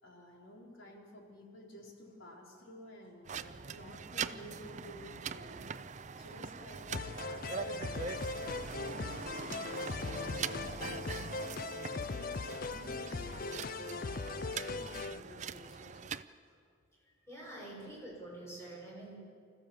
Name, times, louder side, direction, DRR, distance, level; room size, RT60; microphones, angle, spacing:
voice 1, 0.0-16.1 16.4-16.6 17.0-17.5, left 1 dB, 80° left, -1 dB, 4.3 m, -53 dB
sound 1, 3.3-16.2, right 6 dB, 35° right, 0.5 m, -42 dB
sound 2, 6.9-15.2, left 4 dB, 45° left, 0.4 m, -40 dB
voice 2, 17.3-19.2, right 1 dB, 15° left, -4 dB, 6.7 m, -47 dB
25.5 x 15.5 x 7.3 m, 2.2 s
head